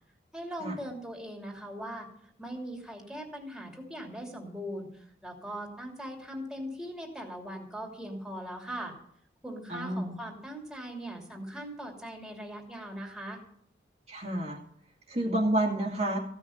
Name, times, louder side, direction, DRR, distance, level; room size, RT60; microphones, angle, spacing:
voice 1, 0.3-2.1 2.4-8.9 9.4-13.4, equal, 5° right, 0 dB, 2.8 m, -40 dB
voice 2, 9.7-10.1 14.1-14.6 15.1-16.2, right 1 dB, 35° right, -2 dB, 2.2 m, -29 dB
16.0 x 6.5 x 9.4 m, 0.67 s
head